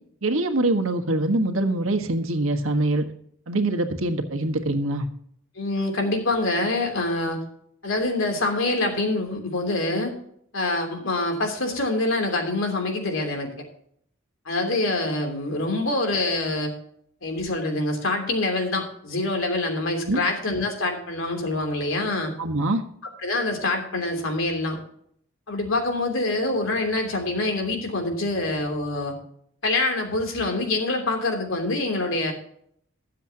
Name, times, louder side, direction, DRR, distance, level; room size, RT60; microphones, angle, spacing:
voice 1, 0.2-3.0 3.5-5.1 20.1-20.2 22.4-22.8, right 2 dB, 80° right, 6 dB, 1.5 m, -24 dB
voice 2, 5.5-7.4 7.8-10.1 10.5-13.5 14.4-16.7 17.2-22.3 23.2-24.8 25.5-29.2 29.6-32.3, left 2 dB, 75° left, 3 dB, 3.1 m, -25 dB
21.5 x 7.6 x 2.9 m, 0.67 s
head